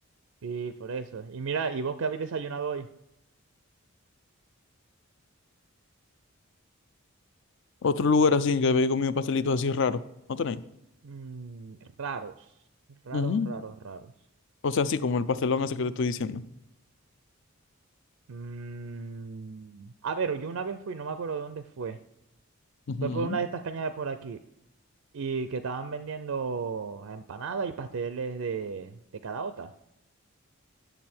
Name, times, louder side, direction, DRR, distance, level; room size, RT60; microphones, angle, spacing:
voice 1, 0.4-2.9 11.0-12.5 12.9-14.1 18.3-22.0 23.0-24.4 25.1-29.0 29.2-29.7, right 5 dB, 70° right, 10 dB, 0.4 m, -34 dB
voice 2, 7.8-10.0 10.3-10.6 13.1-13.5 14.6-16.4 22.9-23.4, left 4 dB, 55° left, 15 dB, 0.4 m, -25 dB
10.5 x 6.8 x 4.4 m, 0.84 s
head